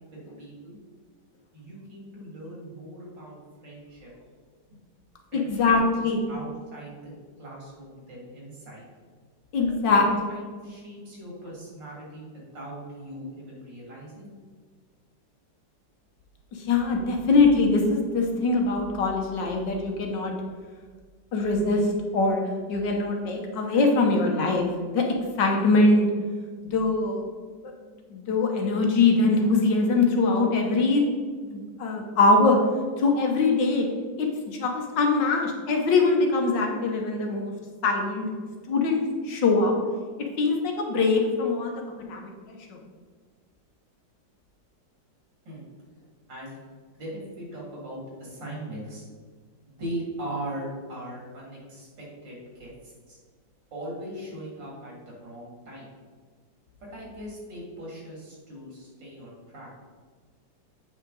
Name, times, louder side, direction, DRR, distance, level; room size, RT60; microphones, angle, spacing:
voice 1, 0.1-0.8 1.5-3.4 3.6-4.4 5.3-5.5 6.0-6.9 7.4-8.8 9.6-14.3 45.4-45.6 46.3-46.6 46.9-49.0 49.6-53.2 53.7-55.9 56.9-59.7, right 1 dB, 75° right, -5 dB, 3.3 m, -39 dB
voice 2, 5.3-6.2 9.5-10.0 16.6-20.3 21.3-22.4 22.7-24.7 24.9-25.0 25.4-26.1 26.6-27.2 28.1-31.0 31.4-32.6 33.0-33.9 34.2-37.5 37.8-38.3 38.7-39.7 40.4-41.8 42.1-42.8, left 3 dB, 75° left, 2 dB, 1.7 m, -22 dB
8.2 x 5.5 x 3.9 m, 1.5 s
omnidirectional pair, 2.0 m